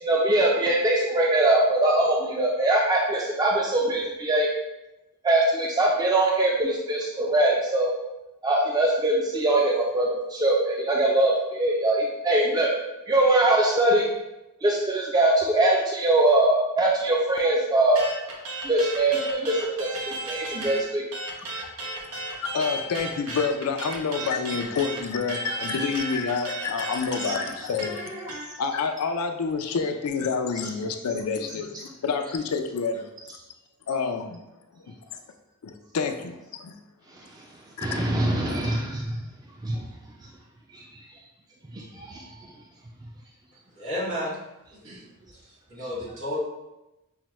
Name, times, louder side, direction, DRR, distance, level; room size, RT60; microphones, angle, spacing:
voice 1, 0.0-4.5 5.2-7.9 8.4-12.7 13.1-14.1 14.6-18.1 18.6-21.0 37.8-39.2 39.6-39.8 40.7-40.8 41.7-42.3, right 1 dB, 20° right, -2 dB, 0.3 m, -22 dB
sound 1, 18.0-20.8 21.1-28.5, right 2 dB, 85° right, 0.9 m, -34 dB
voice 2, 22.4-28.3 28.6-33.1 33.9-34.4 35.6-36.7 37.8-37.9 38.5-38.7, left 5 dB, 85° left, 6 dB, 0.4 m, -28 dB
voice 3, 43.7-44.4 44.7-45.0 45.3-46.4, left 1 dB, 60° right, -5 dB, 1.4 m, -33 dB
5.6 x 2.1 x 3.0 m, 0.97 s
head